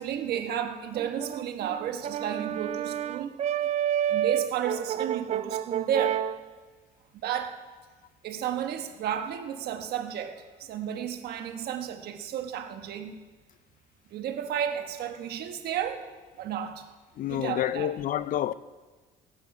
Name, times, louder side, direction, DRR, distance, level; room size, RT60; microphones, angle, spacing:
voice 1, 0.0-3.3 4.1-6.2 7.1-7.6 8.2-13.2 14.1-16.0 16.4-16.8 17.3-17.9, right 9 dB, 70° right, 1.2 m, -32 dB
Brass instrument, 0.9-6.4, right 10 dB, 40° right, 0.4 m, -29 dB
voice 2, 17.2-18.5, left 12 dB, 55° left, 0.5 m, -28 dB
16.5 x 7.8 x 5.3 m
cardioid pair, 110°, 17 cm